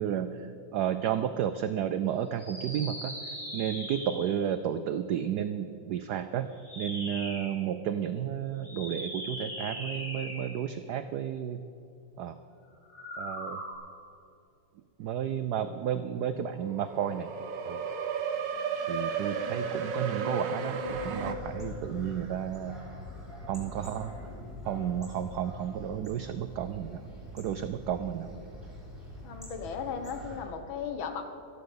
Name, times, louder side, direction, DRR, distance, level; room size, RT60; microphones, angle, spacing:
voice 1, 0.0-6.5 6.8-11.6 12.2-12.4 13.2-13.6 15.0-17.3 17.7-17.8 18.9-22.8 23.5-24.1 24.6-27.0 27.3-28.3, right 9 dB, 85° right, 11 dB, 0.9 m, -32 dB
sound 1, 2.3-4.5 6.5-7.6 8.6-10.8 12.8-13.7, equal, 30° left, 3.9 m, -40 dB
sound 2, 16.5-21.3, right 5 dB, 60° right, 1.6 m, -33 dB
sound 3, 20.8-30.4, left 1 dB, ahead, 3.9 m, -44 dB
voice 2, 29.2-31.2, left 6 dB, 70° left, 7 dB, 1.9 m, -36 dB
13.5 x 11.5 x 6.8 m, 2.7 s
omnidirectional pair, 2.3 m